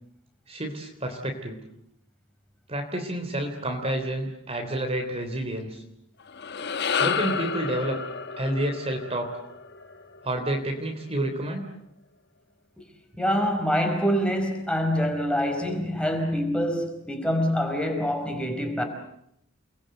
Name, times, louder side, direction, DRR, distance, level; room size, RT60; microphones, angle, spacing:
voice 1, 0.5-1.6 2.7-5.8 7.0-8.0 8.4-9.4 10.2-11.7, right 1 dB, 30° right, 3.3 m, -29 dB
sound 1, 6.2-10.7, left 6 dB, 50° left, 1.2 m, -31 dB
voice 2, 13.2-18.8, equal, 5° left, 4.9 m, -25 dB
30.0 x 21.5 x 8.1 m
head